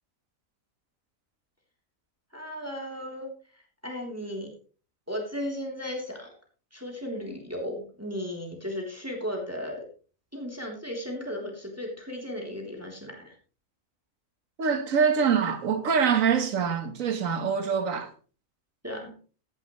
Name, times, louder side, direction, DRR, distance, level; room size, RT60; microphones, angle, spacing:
voice 1, 2.3-4.5 5.1-6.3 6.7-9.8 10.3-13.3 18.8-19.1, equal, 10° right, 3.4 m, -35 dB
voice 2, 14.6-18.1, right 6 dB, 75° right, 1.8 m, -24 dB
15.0 x 11.5 x 3.2 m
omnidirectional pair, 1.4 m